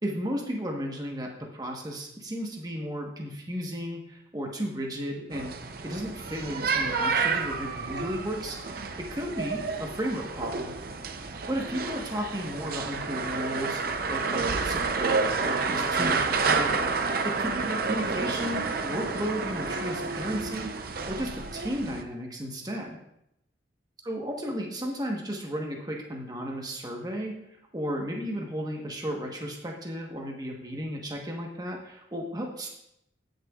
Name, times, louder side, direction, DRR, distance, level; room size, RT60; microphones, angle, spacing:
voice 1, 0.0-5.5 5.8-10.7 11.3-13.8 14.1-16.9 17.2-23.0 24.0-27.3 27.7-32.7, equal, 20° right, 0 dB, 1.2 m, -34 dB
sound 1, 5.3-22.0, right 4 dB, 50° right, 0.6 m, -30 dB
15.0 x 6.6 x 2.4 m, 0.81 s
head